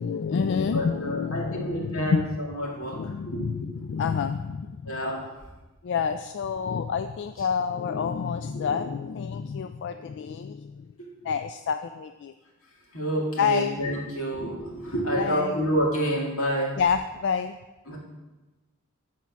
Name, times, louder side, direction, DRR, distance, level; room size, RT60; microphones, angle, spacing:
voice 1, 0.0-2.3 2.9-5.1 5.8-10.9 11.2-12.3 13.4-13.8 15.2-15.6 16.8-17.6, left 6 dB, 55° left, 9 dB, 0.3 m, -28 dB
voice 2, 0.7-2.2 2.5-3.8 4.9-5.2 8.5-8.6 11.0-11.1 12.9-16.8 17.9-18.0, right 1 dB, 80° left, -3 dB, 2.5 m, -28 dB
9.4 x 4.5 x 5.9 m, 1.1 s
head